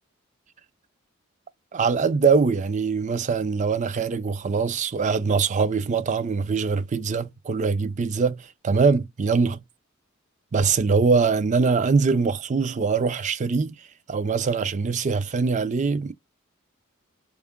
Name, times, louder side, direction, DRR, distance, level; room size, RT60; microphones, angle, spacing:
voice 1, 1.7-9.6 10.5-13.8 14.1-16.1, right 5 dB, 35° right, 0.4 m, -23 dB
4.3 x 2.4 x 3.5 m
head